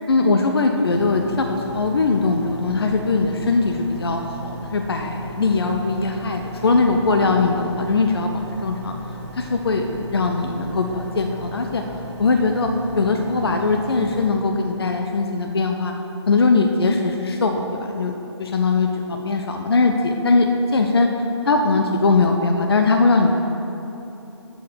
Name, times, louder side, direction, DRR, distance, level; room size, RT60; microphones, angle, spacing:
voice 1, 0.1-8.9 9.3-11.8 12.2-12.7 12.9-15.9 16.3-18.1 18.4-21.1 21.4-23.4, left 3 dB, 55° left, 4 dB, 0.8 m, -20 dB
sound 1, 0.9-14.3, right 1 dB, 15° right, 1.3 m, -37 dB
13.0 x 4.7 x 6.5 m, 3.0 s
figure-of-eight pair, 145°, 15 cm